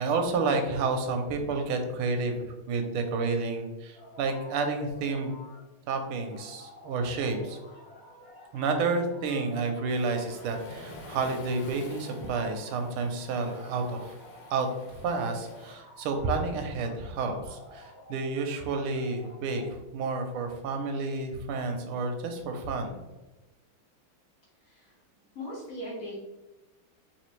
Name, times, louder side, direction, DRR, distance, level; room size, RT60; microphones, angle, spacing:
voice 1, 0.0-5.3 5.9-7.6 8.5-14.1 14.5-19.6 19.9-23.0, right 3 dB, 85° right, 5 dB, 1.5 m, -30 dB
sound 1, 3.9-5.6 5.9-14.8 15.2-17.0 17.4-19.7, left 2 dB, 5° right, 0.9 m, -50 dB
Waves surf, 9.9-15.8, left 1 dB, 90° left, 1.6 m, -48 dB
voice 2, 24.6-25.0 25.3-26.1, left 1 dB, 45° left, -5 dB, 1.4 m, -39 dB
4.1 x 2.9 x 3.0 m, 1.1 s
omnidirectional pair, 2.4 m